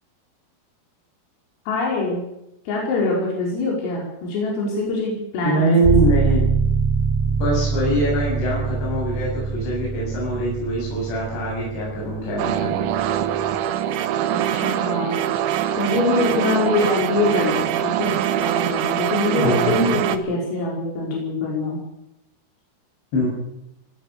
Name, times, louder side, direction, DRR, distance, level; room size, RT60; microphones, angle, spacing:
voice 1, 1.7-2.2 2.7-5.6 14.2-15.2 15.8-21.8, left 2 dB, 90° left, -2 dB, 7.8 m, -24 dB
voice 2, 5.4-6.5 7.4-12.9 19.4-20.0 23.1-23.3, right 1 dB, 60° left, -4 dB, 9.5 m, -23 dB
sound 1, 5.8-13.6, right 4 dB, 5° left, 2.4 m, -24 dB
sound 2, 12.4-20.2, right 10 dB, 75° right, 3.5 m, -23 dB
22.0 x 19.0 x 6.8 m, 0.84 s
omnidirectional pair, 5.8 m